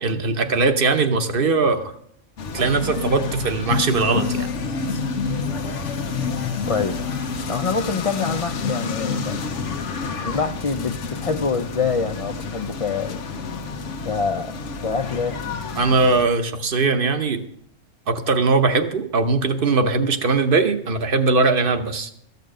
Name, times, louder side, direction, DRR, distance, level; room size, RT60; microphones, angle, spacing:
voice 1, 0.0-1.9 2.5-4.5 15.8-17.4 18.1-22.1, right 3 dB, 55° right, 8 dB, 1.0 m, -20 dB
sound 1, 2.4-16.2, left 4 dB, 90° left, 1.2 m, -28 dB
voice 2, 6.6-7.0 7.5-9.4 10.2-13.2 14.0-14.6 14.8-15.6, left 5 dB, 65° left, 9 dB, 0.3 m, -25 dB
13.5 x 6.8 x 6.4 m, 0.67 s
omnidirectional pair, 1.2 m